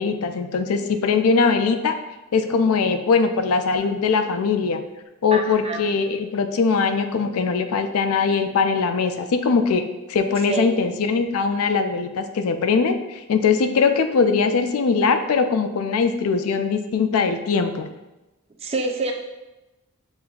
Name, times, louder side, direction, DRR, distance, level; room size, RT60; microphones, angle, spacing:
voice 1, 0.0-2.0 2.3-4.8 5.2-9.8 10.1-17.9, left 5 dB, 80° left, 8 dB, 0.4 m, -21 dB
voice 2, 5.3-5.8 10.5-10.7 18.6-19.1, right 3 dB, 30° right, 3 dB, 0.4 m, -26 dB
7.4 x 2.6 x 2.3 m, 1.0 s
head